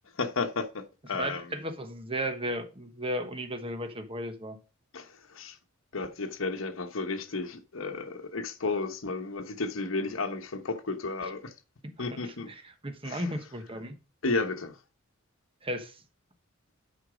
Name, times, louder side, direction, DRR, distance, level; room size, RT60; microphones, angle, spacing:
voice 1, 0.2-1.4 4.9-5.6 5.9-11.5 12.0-12.5 13.0-13.3 14.2-14.8, left 3 dB, 75° left, 1.1 m, -33 dB
voice 2, 1.1-4.6 11.2-11.3 11.8-13.9 15.6-16.0, equal, 25° right, 1.2 m, -35 dB
8.1 x 5.9 x 5.0 m
head